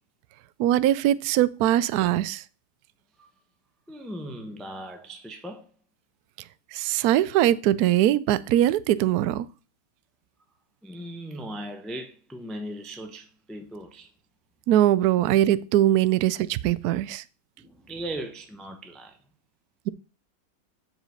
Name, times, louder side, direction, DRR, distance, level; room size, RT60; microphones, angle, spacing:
voice 1, 0.6-2.4 6.7-9.4 14.7-17.2, right 13 dB, 75° right, 0.9 m, -21 dB
voice 2, 3.9-5.7 10.8-14.1 17.6-19.2, right 1 dB, ahead, 0.4 m, -38 dB
7.5 x 4.9 x 6.4 m
omnidirectional pair, 2.1 m